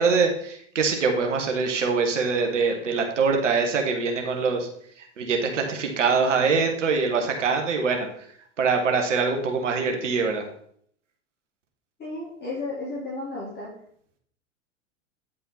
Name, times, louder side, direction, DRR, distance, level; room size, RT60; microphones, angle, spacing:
voice 1, 0.0-4.7 5.0-8.3 8.6-10.5, right 4 dB, 75° right, 4 dB, 1.6 m, -24 dB
voice 2, 12.0-13.7, left 2 dB, 25° left, -7 dB, 3.8 m, -33 dB
10.0 x 5.7 x 4.1 m, 0.62 s
figure-of-eight pair, 95°, 37 cm